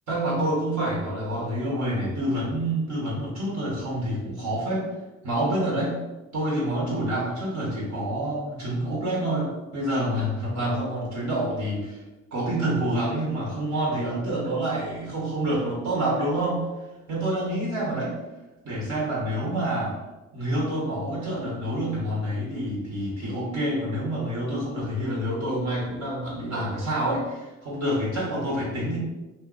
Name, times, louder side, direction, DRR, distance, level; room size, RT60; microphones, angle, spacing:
voice 1, 0.1-4.9 5.2-6.0 6.3-12.0 12.3-16.6 17.1-18.1 18.6-19.9 20.3-29.0, right 1 dB, 65° right, -4 dB, 1.4 m, -27 dB
2.7 x 2.1 x 3.9 m, 1.1 s
cardioid pair, 90°, 30 cm